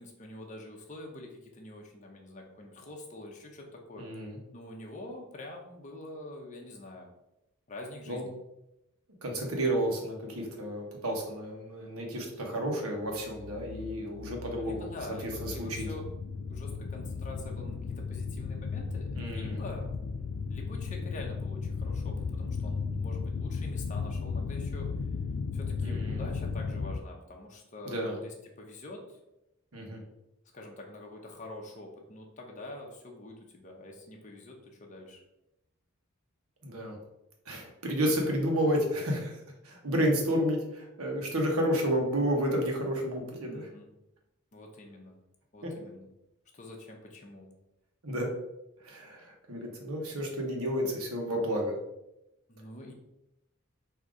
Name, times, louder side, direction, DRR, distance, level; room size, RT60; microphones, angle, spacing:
voice 1, 0.0-4.1 4.5-7.1 7.7-8.3 14.5-16.0 16.5-19.9 20.5-24.9 25.5-29.2 30.5-35.2 43.5-43.9 44.5-45.1 45.5-46.1 46.5-47.5 52.5-52.9, left 2 dB, 35° left, 0 dB, 0.7 m, -45 dB
voice 2, 4.0-4.4 8.1-8.2 9.2-14.9 15.4-15.9 19.1-19.6 25.8-26.3 27.9-28.2 29.7-30.0 36.6-37.0 37.5-43.7 48.0-48.3 48.8-51.8, equal, 85° right, 1 dB, 1.1 m, -31 dB
sound 1, 13.2-27.0, left 5 dB, 70° left, 0.3 m, -35 dB
3.8 x 2.8 x 4.8 m, 0.90 s
head